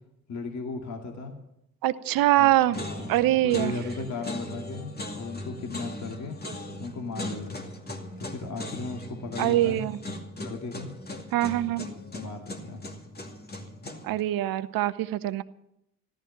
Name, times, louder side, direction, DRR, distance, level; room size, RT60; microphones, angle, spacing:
voice 1, 0.3-1.3 2.4-6.4 6.8-7.7 8.2-9.8 10.4-10.9 11.6-11.7 12.1-12.8, left 3 dB, 45° left, 2 dB, 2.3 m, -36 dB
voice 2, 1.8-2.8 3.1-3.7 9.4-10.0 11.3-11.9 14.0-15.4, right 15 dB, 60° right, 15 dB, 0.8 m, -23 dB
sound 1, 2.0-2.4 2.7-14.2, left 1 dB, 25° left, 2.4 m, -39 dB
14.0 x 12.5 x 5.9 m, 0.80 s
hypercardioid pair, 50°, 38 cm